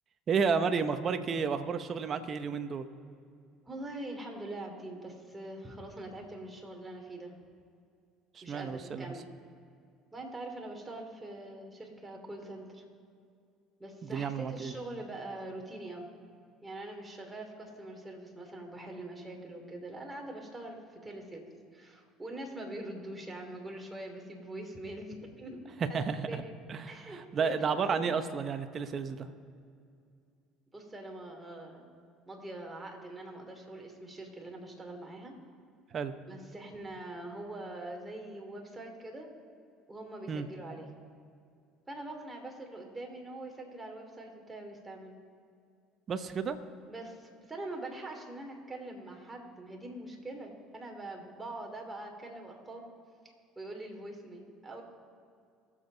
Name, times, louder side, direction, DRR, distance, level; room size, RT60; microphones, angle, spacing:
voice 1, 0.3-2.9 8.3-9.1 14.1-14.8 25.9-26.4 26.7-29.3 35.9-36.1 40.3-40.5 46.1-46.6, right 5 dB, 45° right, 9 dB, 1.0 m, -32 dB
voice 2, 3.6-7.3 8.4-9.3 10.1-12.8 13.8-16.1 16.6-21.4 21.7-26.5 26.9-28.1 30.7-31.9 32.3-35.4 36.3-39.3 39.9-40.9 41.9-45.2 46.9-52.9 53.5-54.8, right 2 dB, 15° right, 1 dB, 2.9 m, -43 dB
22.5 x 7.5 x 4.0 m, 2.3 s
supercardioid pair, 80°, 0 cm